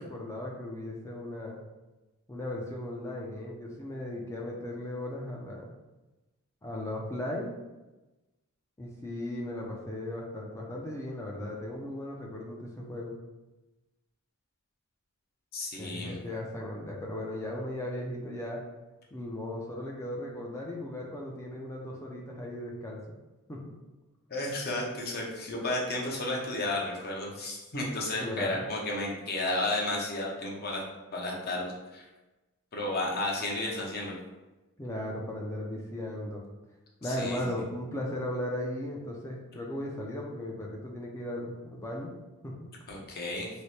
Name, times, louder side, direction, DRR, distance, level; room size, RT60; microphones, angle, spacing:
voice 1, 0.0-1.6 2.3-5.7 6.6-7.5 8.8-13.1 15.8-18.6 19.1-23.2 23.5-23.7 28.2-28.7 34.8-36.4 37.0-42.1 42.4-42.7, left 1 dB, 15° left, -2 dB, 0.4 m, -37 dB
voice 2, 15.5-16.2 24.3-30.8 31.1-32.0 32.7-34.1 37.0-37.4 42.9-43.5, left 2 dB, 45° left, -3 dB, 0.7 m, -32 dB
3.2 x 2.1 x 4.1 m, 1.1 s
head